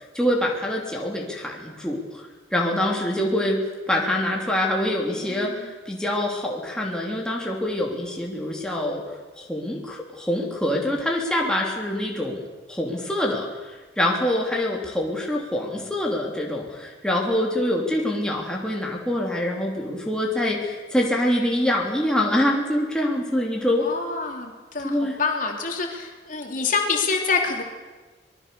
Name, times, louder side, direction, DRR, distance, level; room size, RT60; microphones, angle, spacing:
voice 1, 0.1-9.0 9.4-12.4 12.7-23.9 24.8-25.2, left 1 dB, 5° left, -2 dB, 3.1 m, -25 dB
voice 2, 5.1-5.7 23.8-27.6, left 4 dB, 50° left, 2 dB, 3.3 m, -27 dB
25.5 x 20.5 x 7.0 m, 1.3 s
head